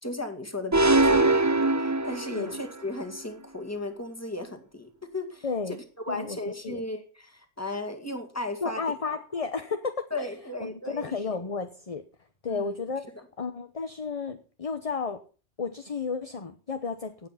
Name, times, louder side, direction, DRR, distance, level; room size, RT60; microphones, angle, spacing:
voice 1, 0.0-1.5 1.8-5.8 6.1-8.8 10.1-11.4 12.5-12.8, left 2 dB, 15° left, 6 dB, 2.2 m, -35 dB
sound 1, 0.7-2.7, right 2 dB, 15° right, 0.7 m, -22 dB
voice 2, 5.4-5.8 6.1-6.4 6.6-6.8 8.6-12.0 12.4-13.0 13.4-15.2 15.6-17.3, left 5 dB, 30° left, 8 dB, 1.0 m, -32 dB
17.0 x 8.4 x 5.8 m, 0.38 s
omnidirectional pair, 1.2 m